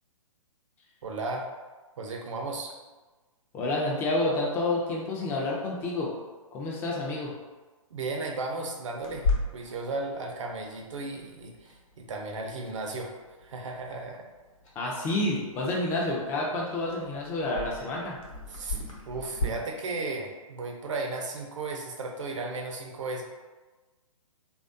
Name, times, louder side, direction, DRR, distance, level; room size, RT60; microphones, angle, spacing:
voice 1, 1.0-1.5 2.0-2.8 7.9-13.1 13.4-14.3 18.5-23.2, right 3 dB, 60° right, 2 dB, 0.6 m, -35 dB
voice 2, 3.5-6.1 6.5-7.3 14.8-18.2, left 2 dB, 10° left, -3 dB, 0.3 m, -29 dB
Clock, 9.0-19.5, left 3 dB, 65° left, 0.9 m, -37 dB
3.2 x 2.4 x 2.5 m, 1.3 s
figure-of-eight pair, 125°, 18 cm